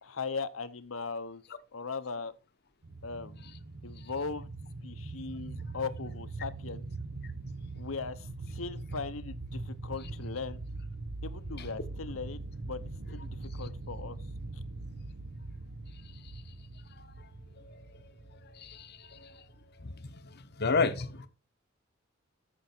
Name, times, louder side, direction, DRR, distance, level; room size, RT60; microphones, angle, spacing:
voice 1, 0.0-1.4 1.7-2.3 3.0-3.5 3.8-4.5 4.8-6.8 7.7-10.6 11.2-14.2 14.5-14.6, left 4 dB, 75° left, 0.9 m, -39 dB
sound 1, 2.8-19.9, right 2 dB, 70° right, 1.0 m, -42 dB
voice 2, 17.6-18.1 18.4-19.4 19.8-21.3, left 4 dB, 50° left, 1.0 m, -33 dB
14.0 x 6.2 x 4.5 m
head